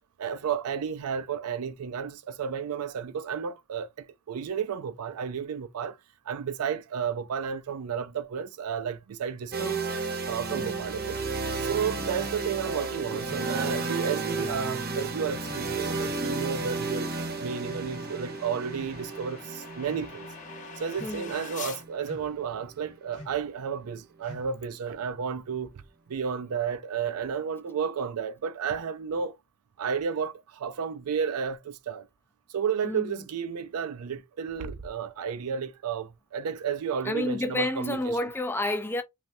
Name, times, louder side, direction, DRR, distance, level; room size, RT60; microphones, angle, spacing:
voice 1, 0.2-6.0 6.3-9.7 10.2-11.2 11.6-17.1 17.4-20.3 20.8-25.8 26.1-29.4 29.8-32.1 32.5-38.3, right 7 dB, 90° right, 0.4 m, -32 dB
sound 1, 9.5-23.4, right 3 dB, 45° right, 0.8 m, -33 dB
voice 2, 9.6-10.1 10.5-10.8 11.9-12.1 21.0-21.3 32.8-33.2 37.0-39.0, left 1 dB, 10° left, 0.4 m, -31 dB
sound 2, 12.1-12.4 13.2-13.5 14.3-14.6 15.4-15.7 16.5-16.8 17.6-18.2 18.7-19.0 19.7-20.1 20.9-21.3 22.0-22.4 23.1-23.5 24.2-24.7, left 2 dB, 85° left, 1.0 m, -47 dB
sound 3, 14.2-21.8, left 5 dB, 35° left, 0.8 m, -47 dB
3.2 x 2.7 x 2.6 m
head